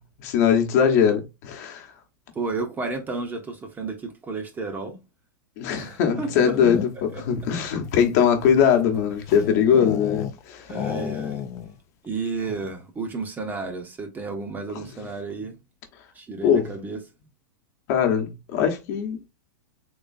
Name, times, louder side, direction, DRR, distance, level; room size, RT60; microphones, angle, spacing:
voice 1, 0.2-1.9 5.6-10.7 14.7-14.8 16.4-16.7 17.9-19.2, left 7 dB, 55° left, 1.0 m, -21 dB
voice 2, 2.3-5.0 5.8-6.3 7.1-7.2 10.7-11.4 12.0-15.5 16.1-17.0, right 3 dB, 15° right, 0.7 m, -32 dB
sound 1, 6.2-7.2 7.8-10.4 10.7-11.8 12.0-12.1 12.4-12.8, left 8 dB, 30° left, 0.4 m, -32 dB
3.8 x 3.0 x 2.5 m
hypercardioid pair, 130°, 11 cm